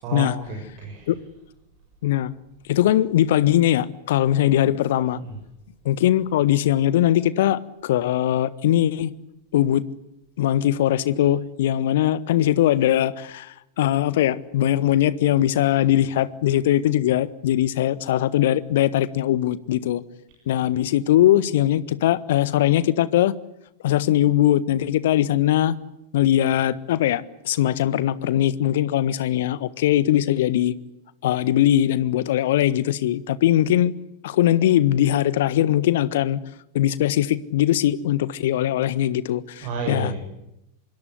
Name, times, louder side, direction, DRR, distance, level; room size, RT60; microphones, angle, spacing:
voice 1, 0.0-1.2 5.1-5.4 39.6-40.2, right 4 dB, 40° right, 2 dB, 7.0 m, -31 dB
voice 2, 2.0-2.3 2.7-5.2 5.8-9.1 9.5-9.8 10.4-20.0 20.5-23.3 23.8-25.7 26.1-30.7 31.2-33.9 34.2-36.4 36.7-40.1, left 12 dB, 55° left, 18 dB, 1.4 m, -20 dB
25.5 x 23.0 x 8.2 m, 0.86 s
figure-of-eight pair, 90°, 0 cm